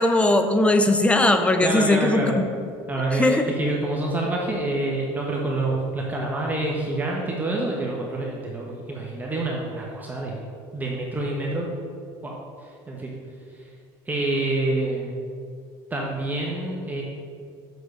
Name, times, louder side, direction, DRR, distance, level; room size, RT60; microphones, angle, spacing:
voice 1, 0.0-2.4 3.1-3.4, left 2 dB, 10° left, 7 dB, 0.8 m, -19 dB
voice 2, 1.6-2.3 2.9-10.4 10.7-11.8 12.2-12.3 12.6-13.1 14.1-15.1 15.9-17.0, right 2 dB, 15° right, -2 dB, 1.3 m, -27 dB
6.6 x 6.4 x 6.7 m, 2.4 s
supercardioid pair, 110°, 10 cm